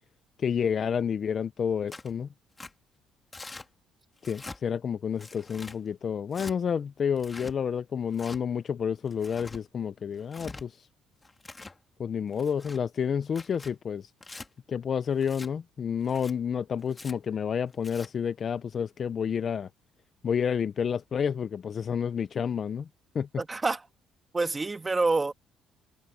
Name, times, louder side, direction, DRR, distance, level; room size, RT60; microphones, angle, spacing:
voice 1, 0.4-2.3 4.2-10.9 12.0-14.1 14.7-19.7 20.2-22.9 23.1-23.3, left 7 dB, 35° left, 0.4 m, -30 dB
Tearing, 1.9-2.1 2.6-2.7 3.3-3.7 4.2-4.6 5.2-5.8 6.3-6.5 7.2-7.5 8.1-8.4 9.1-9.6 10.2-10.6 11.2-11.8 12.3-12.8 13.3-13.7 14.2-14.5 15.2-15.5 16.0-16.3 16.9-17.1 17.7-18.1, left 3 dB, 15° left, 1.7 m, -44 dB
voice 2, 23.4-23.9 24.3-25.3, right 3 dB, 15° right, 1.4 m, -27 dB
cardioid pair, 155°, 0 cm